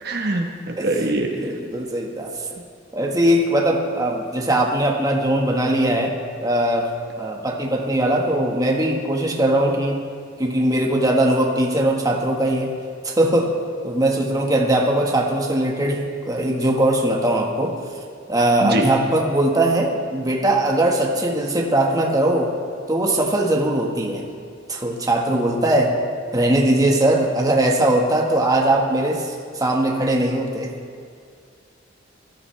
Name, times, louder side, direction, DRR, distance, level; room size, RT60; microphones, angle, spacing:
voice 1, 0.0-1.5 18.6-18.9, right 2 dB, 55° right, 2 dB, 1.2 m, -23 dB
voice 2, 1.3-2.3 2.9-6.9 7.2-10.0 10.4-12.7 13.0-13.5 13.8-17.8 18.3-22.5 22.9-24.2 24.7-25.9 26.3-30.7, right 1 dB, 20° right, 0 dB, 1.4 m, -20 dB
20.0 x 13.5 x 3.3 m, 2.3 s
head